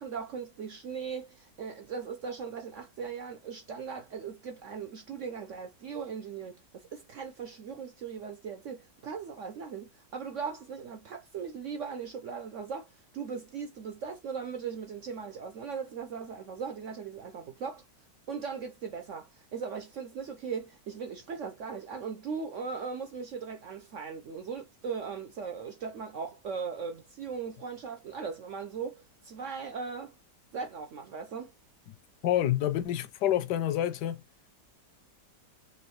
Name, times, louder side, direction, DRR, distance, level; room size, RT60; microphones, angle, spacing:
voice 1, 0.0-17.8 18.3-30.1 30.5-31.5, right 6 dB, 60° right, 0.8 m, -39 dB
voice 2, 32.2-34.2, left 12 dB, 80° left, 1.2 m, -27 dB
5.5 x 3.0 x 3.0 m
omnidirectional pair, 1.9 m